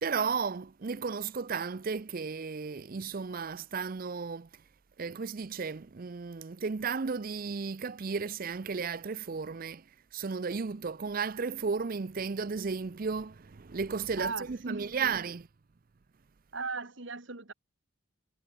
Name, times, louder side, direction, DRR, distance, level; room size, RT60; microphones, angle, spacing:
voice 1, 0.0-4.5 5.0-9.8 10.1-15.4, right 5 dB, 45° right, 0.5 m, -34 dB
voice 2, 14.2-15.2 16.5-17.5, right 4 dB, 60° right, 2.1 m, -38 dB
head